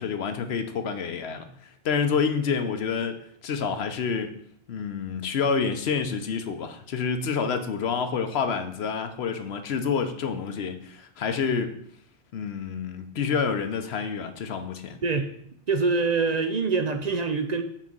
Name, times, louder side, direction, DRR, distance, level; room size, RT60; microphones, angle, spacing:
voice 1, 0.0-4.4 4.7-11.8 12.3-15.0, left 6 dB, 80° left, 8 dB, 1.0 m, -28 dB
voice 2, 15.7-17.6, right 4 dB, 50° right, 7 dB, 0.6 m, -25 dB
5.9 x 4.1 x 6.1 m, 0.66 s
omnidirectional pair, 1.1 m